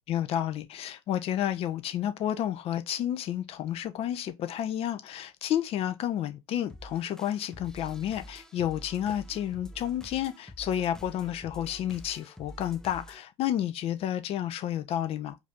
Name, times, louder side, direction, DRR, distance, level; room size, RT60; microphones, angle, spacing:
voice 1, 0.1-15.4, left 11 dB, 40° left, 0.7 m, -31 dB
sound 1, 6.7-13.2, equal, 5° left, 0.6 m, -47 dB
5.0 x 2.7 x 3.5 m
figure-of-eight pair, 75°, 15 cm